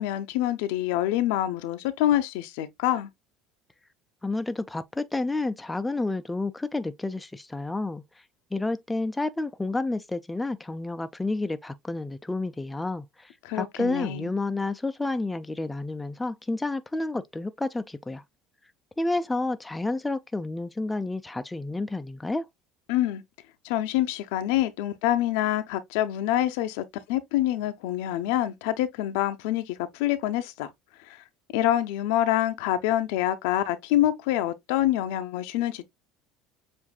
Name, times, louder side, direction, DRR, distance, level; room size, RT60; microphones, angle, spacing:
voice 1, 0.0-3.1 13.4-14.3 22.9-23.2 23.6-30.7 31.1-31.2 31.5-35.8, left 13 dB, 80° left, 0.6 m, -26 dB
voice 2, 4.2-8.0 8.5-18.2 19.0-22.5, left 2 dB, 10° left, 0.5 m, -30 dB
7.2 x 2.6 x 2.3 m
supercardioid pair, 105°, 0 cm